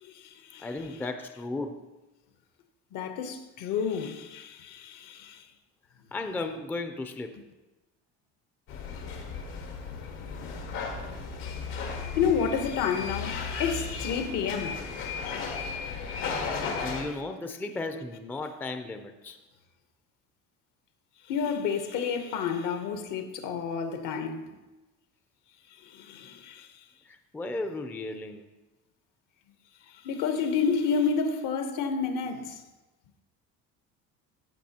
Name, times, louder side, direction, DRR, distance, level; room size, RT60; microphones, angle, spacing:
voice 1, 0.6-1.8 6.1-7.4 16.8-19.4 27.1-28.4, left 2 dB, 5° left, 0.4 m, -35 dB
voice 2, 2.9-5.4 12.2-14.8 21.3-24.5 25.9-26.7 30.0-32.6, left 6 dB, 70° left, 1.0 m, -30 dB
sound 1, 8.7-17.0, left 5 dB, 85° left, 1.7 m, -35 dB
15.0 x 5.9 x 2.9 m
cardioid pair, 125°, 33 cm